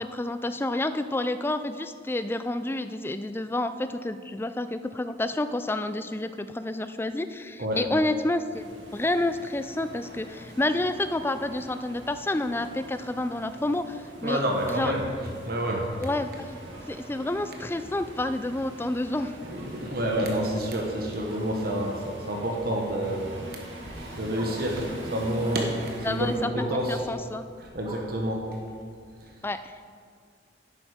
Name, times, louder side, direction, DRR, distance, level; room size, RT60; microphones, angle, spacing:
voice 1, 0.0-14.4 14.7-14.9 16.0-16.6 16.9-19.3 26.0-27.4 29.4-29.8, left 2 dB, 10° left, 11 dB, 0.4 m, -29 dB
sound 1, 8.5-26.4, right 1 dB, 80° right, 1.9 m, -44 dB
voice 2, 14.2-15.0 15.4-15.9 19.4-23.2 23.9-27.0 27.6-28.6, right 1 dB, 55° right, 0 dB, 1.3 m, -28 dB
Bark, 21.2-21.5 22.3-22.6 23.8-23.9 24.3-24.6 25.4-25.7 26.5-26.9 27.8-28.2 29.2-29.3, right 1 dB, 25° right, 1.7 m, -42 dB
10.5 x 8.6 x 5.0 m, 2.1 s
head